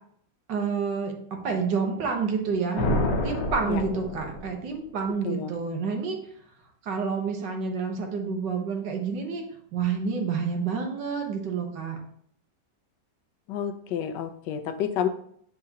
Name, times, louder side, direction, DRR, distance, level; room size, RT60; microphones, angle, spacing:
voice 1, 0.5-1.1 1.4-6.2 6.8-9.4 9.7-12.0, right 5 dB, 80° right, 2 dB, 1.8 m, -29 dB
sound 1, 2.8-4.7, left 1 dB, 50° left, 0.9 m, -28 dB
voice 2, 13.5-15.1, left 9 dB, 85° left, 8 dB, 1.3 m, -29 dB
7.9 x 4.7 x 2.8 m, 0.65 s
omnidirectional pair, 1.8 m